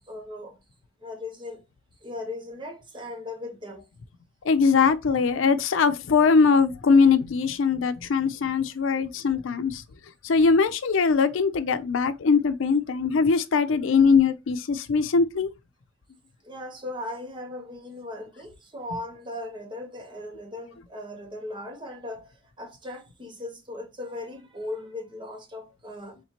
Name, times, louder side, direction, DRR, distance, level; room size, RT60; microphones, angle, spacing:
voice 1, 0.1-0.6 1.0-1.6 2.0-3.8 16.4-26.2, left 2 dB, 25° right, 1.0 m, -38 dB
voice 2, 4.4-9.8 10.2-15.5, left 5 dB, 90° left, 0.5 m, -21 dB
4.3 x 3.2 x 2.8 m
head